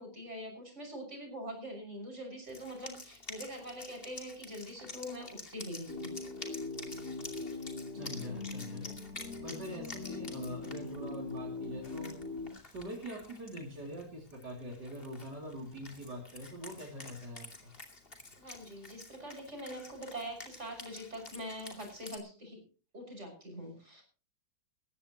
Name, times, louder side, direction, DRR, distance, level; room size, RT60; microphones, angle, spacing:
voice 1, 0.0-6.1 18.4-22.6 22.9-24.0, equal, 40° right, 3 dB, 6.6 m, -44 dB
Wind instrument woodwind instrument, 2.4-22.2, left 3 dB, 30° left, 2.8 m, -50 dB
sound 1, 5.9-12.5, left 3 dB, 60° left, 4.7 m, -41 dB
voice 2, 7.9-8.8 9.4-12.1 12.6-17.7, equal, 65° right, -1 dB, 3.5 m, -43 dB
20.0 x 15.0 x 3.0 m, 0.37 s
omnidirectional pair, 1.9 m